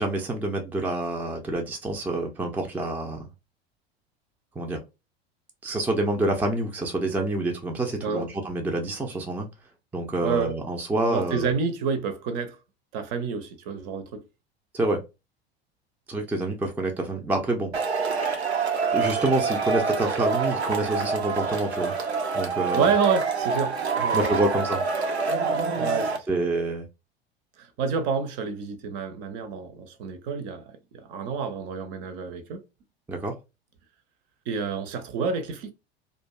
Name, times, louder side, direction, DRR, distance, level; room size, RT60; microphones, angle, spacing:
voice 1, 0.0-3.3 4.6-4.8 5.6-9.5 9.9-11.5 14.7-15.0 16.1-17.7 18.9-21.9 22.3-22.9 24.1-24.8 26.3-26.9 33.1-33.4, right 2 dB, 5° right, 0.4 m, -27 dB
voice 2, 10.2-10.6 11.1-12.6 12.9-14.2 22.7-24.5 25.7-26.3 27.6-32.6 34.5-35.7, right 6 dB, 50° right, 0.6 m, -29 dB
Male speech man speaking / Shout / Clapping, 17.7-26.2, right 4 dB, 90° right, 0.6 m, -26 dB
2.5 x 2.2 x 2.3 m
figure-of-eight pair, 80°, 32 cm